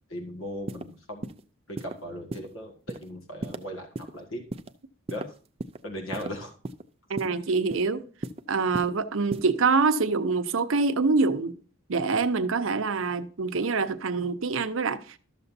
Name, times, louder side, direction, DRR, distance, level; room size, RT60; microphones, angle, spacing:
voice 1, 0.1-1.3 1.7-4.4 5.1-5.2 5.8-6.5, equal, 70° left, 1.8 m, -38 dB
sound 1, 0.7-0.8 1.2-1.4 1.8-1.9 2.3-2.5 2.9-3.0 3.4-3.6 4.0-4.1 4.5-4.7 5.1-5.8 6.1-6.3 6.6-6.8 7.2-7.3 7.7-7.9 8.2-8.4 8.7-8.9 9.3-9.5, right 2 dB, 30° right, 0.4 m, -34 dB
voice 2, 7.1-8.0 8.5-11.5 11.9-15.2, right 4 dB, 75° right, 0.7 m, -25 dB
12.5 x 6.8 x 2.7 m
head